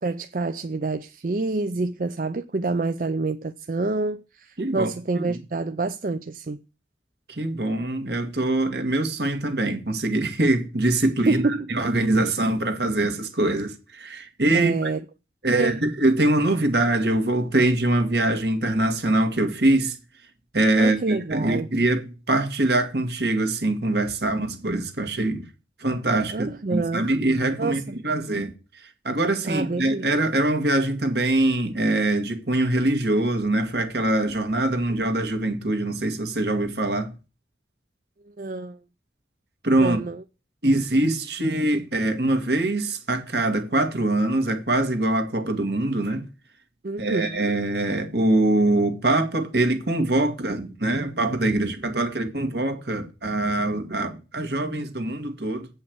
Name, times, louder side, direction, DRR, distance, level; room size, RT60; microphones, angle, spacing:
voice 1, 0.0-6.6 11.3-11.7 14.5-15.0 15.5-15.8 20.8-21.7 26.3-27.1 27.6-28.0 29.4-30.1 38.4-38.8 39.8-40.2 46.8-47.5, right 3 dB, 50° right, 0.5 m, -27 dB
voice 2, 4.6-4.9 5.1-5.4 7.3-14.9 15.4-20.0 20.5-25.4 25.8-37.1 39.6-40.0 40.6-46.3 47.0-55.7, right 2 dB, 70° right, 1.9 m, -23 dB
8.4 x 5.6 x 7.8 m
head